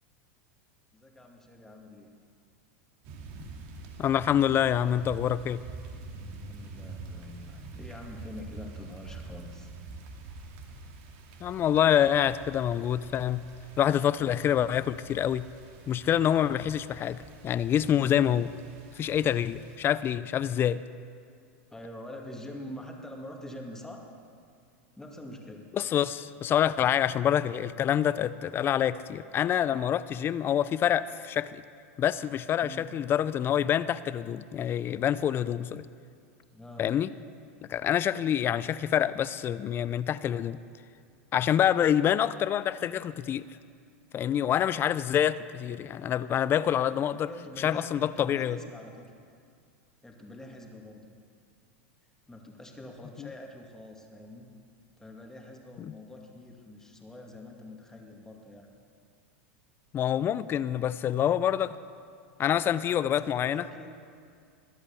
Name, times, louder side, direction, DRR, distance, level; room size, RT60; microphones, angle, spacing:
voice 1, 0.9-2.1 6.5-9.7 21.7-24.1 25.0-25.7 32.6-32.9 36.5-36.9 47.2-49.1 50.0-51.2 52.3-54.5 55.0-58.7 62.6-63.9, left 1 dB, 5° left, 1 dB, 2.1 m, -45 dB
sound 1, 3.0-19.8, right 3 dB, 60° right, 2.3 m, -46 dB
voice 2, 4.0-5.6 11.4-13.5 13.8-15.5 15.9-18.5 19.0-20.8 25.7-31.6 32.0-35.8 36.8-37.1 37.7-40.6 41.3-43.5 44.1-47.3 47.6-48.6 53.2-53.3 55.8-55.9 59.9-61.8 62.4-63.6, left 10 dB, 30° left, 16 dB, 0.5 m, -26 dB
21.5 x 8.5 x 7.2 m, 2.3 s
hypercardioid pair, 115°, 7 cm